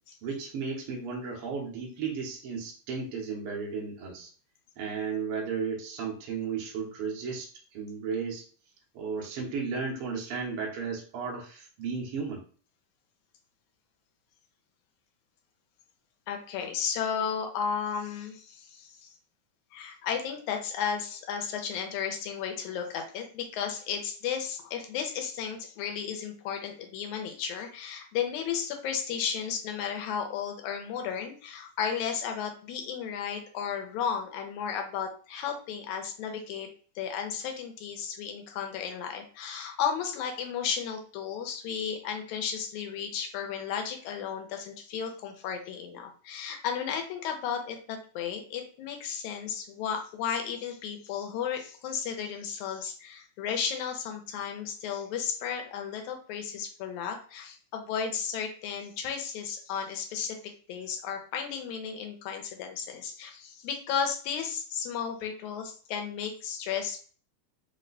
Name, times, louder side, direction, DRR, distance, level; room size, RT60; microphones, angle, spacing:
voice 1, 0.2-4.3 4.8-8.4 8.9-12.4, right 5 dB, 70° right, -1 dB, 1.4 m, -34 dB
voice 2, 16.3-19.1 19.7-36.7 37.0-60.4 60.7-67.0, left 7 dB, 80° left, 3 dB, 2.1 m, -34 dB
4.7 x 2.1 x 3.9 m, 0.42 s
omnidirectional pair, 3.5 m